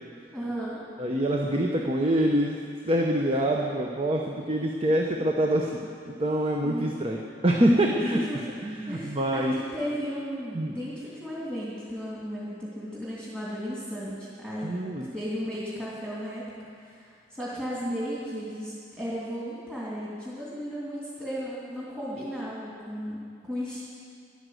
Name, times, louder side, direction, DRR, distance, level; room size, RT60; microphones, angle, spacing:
voice 1, 0.3-0.8 6.6-7.0 7.8-8.4 8.9-16.5 16.8-23.9, equal, 10° right, -9 dB, 2.8 m, -35 dB
voice 2, 1.0-2.6 2.8-8.2 8.6-9.6 10.5-10.7 14.6-15.1, right 1 dB, 30° right, 0 dB, 0.9 m, -25 dB
13.0 x 11.0 x 7.7 m, 2.3 s
head